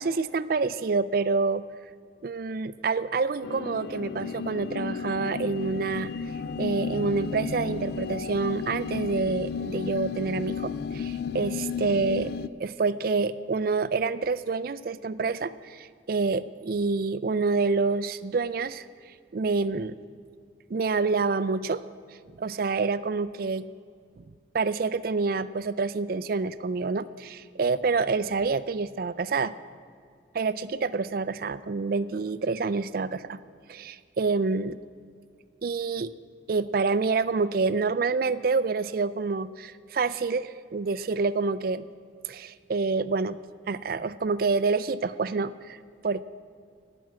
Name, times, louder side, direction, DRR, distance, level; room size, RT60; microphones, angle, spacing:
voice 1, 0.0-1.6 2.2-6.1 6.6-12.3 12.6-18.9 19.3-20.1 20.7-21.8 22.4-23.7 24.2-24.3 24.5-29.5 30.3-33.4 33.7-34.8 35.6-36.1 36.5-41.9 42.3-43.4 43.7-46.2, right 4 dB, 50° right, 16 dB, 0.4 m, -27 dB
sound 1, 3.4-12.5, left 5 dB, 55° left, 0.3 m, -33 dB
13.5 x 6.1 x 9.5 m, 2.2 s
head